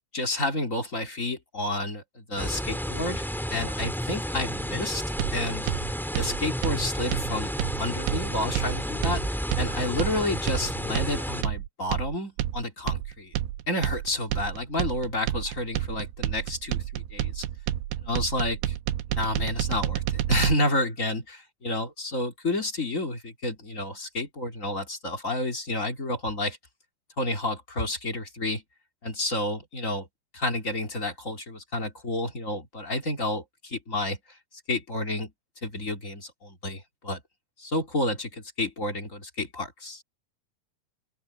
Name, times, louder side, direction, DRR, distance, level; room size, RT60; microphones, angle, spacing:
voice 1, 0.1-5.0 5.3-5.7 6.1-7.5 7.8-13.3 13.7-17.4 18.0-18.7 19.1-26.6 27.2-28.6 29.0-30.1 30.3-34.2 34.7-35.3 35.6-37.2 37.6-40.0, left 1 dB, 20° left, 3.0 m, -30 dB
sound 1, 2.4-11.4, equal, ahead, 1.4 m, -31 dB
sound 2, 5.2-20.5, right 12 dB, 80° right, 2.8 m, -30 dB
open air
omnidirectional pair, 4.7 m